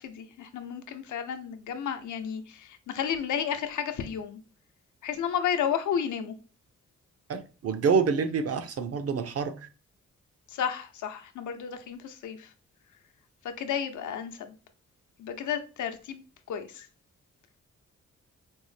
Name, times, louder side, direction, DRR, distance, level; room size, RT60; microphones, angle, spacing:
voice 1, 0.0-4.4 5.0-6.3 10.5-12.5 13.6-14.5 15.2-16.9, left 8 dB, 85° left, 0.6 m, -32 dB
voice 2, 7.3-9.7, right 5 dB, 55° right, 0.6 m, -27 dB
4.4 x 2.0 x 3.2 m
cardioid pair, 65°, 29 cm